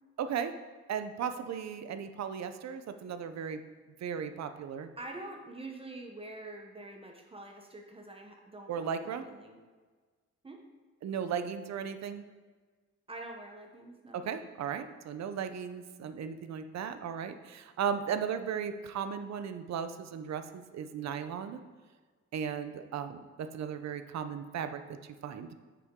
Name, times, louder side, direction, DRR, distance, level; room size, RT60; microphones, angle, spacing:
voice 1, 0.2-0.5 0.9-3.6 4.0-4.9 8.7-9.2 11.0-12.3 14.1-21.6 22.3-25.5, right 7 dB, 65° right, 9 dB, 0.7 m, -36 dB
voice 2, 5.0-8.9 9.2-9.6 10.4-10.6 13.1-14.2, right 2 dB, 20° right, 2 dB, 0.8 m, -45 dB
9.4 x 6.9 x 3.7 m, 1.4 s
wide cardioid pair, 155°, 29 cm